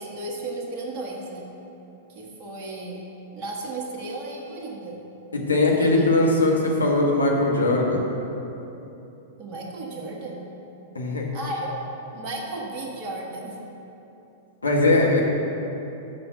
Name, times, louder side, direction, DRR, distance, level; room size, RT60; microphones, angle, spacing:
voice 1, 0.0-1.5 2.1-3.0 3.3-5.0 5.7-6.4 9.4-10.4 11.3-11.8 12.1-13.6, right 2 dB, 40° right, -2 dB, 1.6 m, -34 dB
voice 2, 5.3-8.0 10.9-11.2 14.6-15.2, left 2 dB, 80° left, -2 dB, 1.4 m, -20 dB
6.8 x 5.6 x 6.9 m, 3.0 s
figure-of-eight pair, 100°, 0 cm